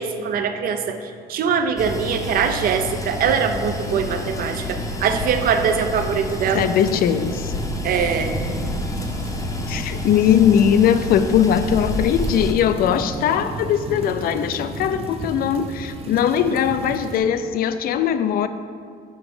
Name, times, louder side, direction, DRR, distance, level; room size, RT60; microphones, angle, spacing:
voice 1, 0.0-6.7 7.8-8.3, right 6 dB, 60° right, 8 dB, 0.6 m, -22 dB
sound 1, 1.8-12.5, left 1 dB, 20° left, 0.7 m, -29 dB
voice 2, 6.5-7.5 9.7-18.5, left 9 dB, 60° left, 11 dB, 0.4 m, -20 dB
sound 2, 7.5-17.2, right 1 dB, 35° right, 0.9 m, -34 dB
6.0 x 5.4 x 4.9 m, 2.2 s
cardioid pair, 110°, 17 cm